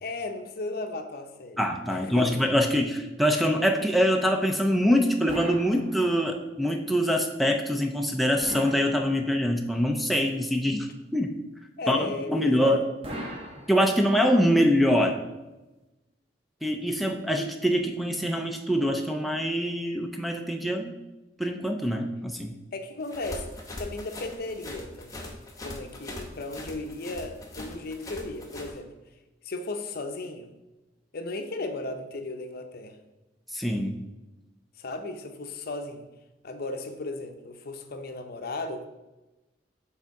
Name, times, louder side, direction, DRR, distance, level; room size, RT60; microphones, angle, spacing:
voice 1, 0.0-1.6 1.9-2.3 11.8-12.8 22.7-23.5 23.8-25.3 25.6-28.9 29.4-30.5 31.1-33.0 34.8-36.1 36.4-38.9, left 2 dB, 55° left, 6 dB, 0.6 m, -35 dB
voice 2, 1.6-11.4 11.9-12.8 13.7-15.2 16.6-20.9 21.4-22.6 33.5-34.0, equal, ahead, 4 dB, 0.4 m, -24 dB
sound 1, 5.3-6.5 8.4-9.6 13.0-14.3, equal, 30° right, 1.1 m, -39 dB
sound 2, 23.0-28.7, left 1 dB, 20° left, 0.8 m, -41 dB
6.7 x 3.5 x 4.7 m, 1.1 s
head